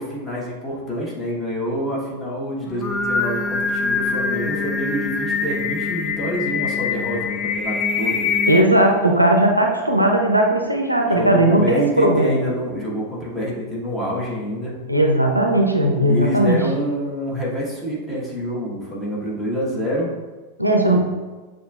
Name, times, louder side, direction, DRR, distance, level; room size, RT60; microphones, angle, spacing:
voice 1, 0.0-8.3 11.0-14.8 16.0-20.2 20.8-21.0, equal, 10° left, -5 dB, 1.2 m, -27 dB
Singing, 2.7-8.6, left 4 dB, 25° left, 0.4 m, -24 dB
voice 2, 8.5-12.4 14.9-16.6 20.6-21.0, right 1 dB, 85° right, 1 dB, 0.5 m, -17 dB
6.8 x 2.5 x 2.4 m, 1.3 s
figure-of-eight pair, 90°, 0 cm